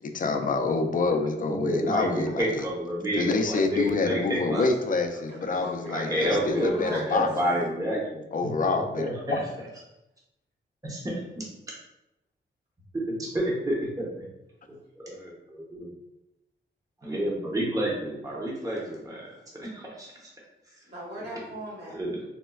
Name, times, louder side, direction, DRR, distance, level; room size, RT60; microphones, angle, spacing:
voice 1, 0.0-2.7 3.1-7.3 8.3-9.4, left 4 dB, 45° left, 6 dB, 0.4 m, -27 dB
voice 2, 1.5-4.7 5.9-8.2 8.7-9.7 10.8-11.4 12.9-14.1 15.0-15.9 17.0-20.3 21.9-22.2, equal, 15° right, -4 dB, 0.8 m, -29 dB
voice 3, 5.3-7.2 20.8-22.0, equal, 60° right, -6 dB, 1.5 m, -39 dB
4.1 x 2.1 x 2.3 m, 0.88 s
cardioid pair, 80°, 20 cm